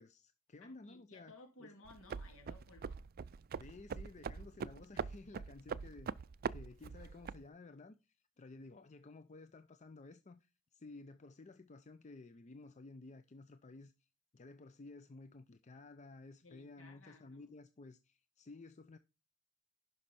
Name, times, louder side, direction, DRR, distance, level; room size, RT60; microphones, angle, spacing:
voice 1, 0.0-1.3 1.6-1.7 3.6-6.1 6.5-14.1 14.3-19.0, left 3 dB, 35° left, 0.5 m, -54 dB
voice 2, 0.6-3.0 16.4-17.5, left 3 dB, 65° left, 3.0 m, -59 dB
sound 1, 1.8-7.5, right 6 dB, 45° right, 0.4 m, -43 dB
11.5 x 5.4 x 4.3 m
head